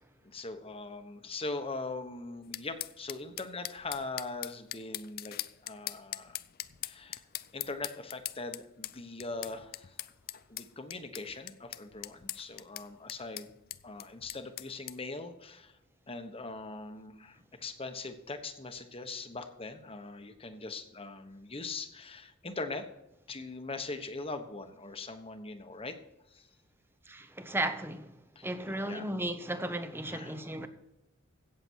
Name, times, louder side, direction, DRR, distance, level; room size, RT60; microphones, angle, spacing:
voice 1, 0.2-5.4 5.6-6.4 6.8-7.2 7.5-10.0 10.5-13.5 13.8-15.8 16.1-22.9 23.3-25.9 26.3-26.5 28.3-29.0 30.1-30.4, left 3 dB, 25° left, 1.2 m, -41 dB
sound 1, 2.5-15.0, left 14 dB, 45° left, 0.4 m, -41 dB
voice 2, 27.1-28.1 28.4-30.7, right 1 dB, 10° right, 1.0 m, -35 dB
16.5 x 7.0 x 4.6 m
head